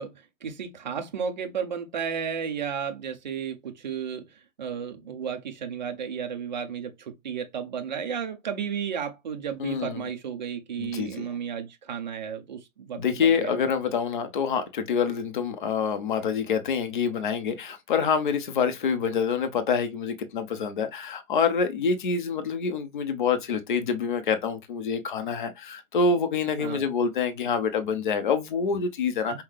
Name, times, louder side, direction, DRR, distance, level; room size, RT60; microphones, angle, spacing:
voice 1, 0.0-13.5 26.6-26.9 29.3-29.4, right 7 dB, 30° right, 0.6 m, -33 dB
voice 2, 9.6-10.1 10.8-11.3 12.9-29.4, left 6 dB, 35° left, 0.6 m, -26 dB
5.7 x 2.1 x 3.2 m
hypercardioid pair, 165°, 44 cm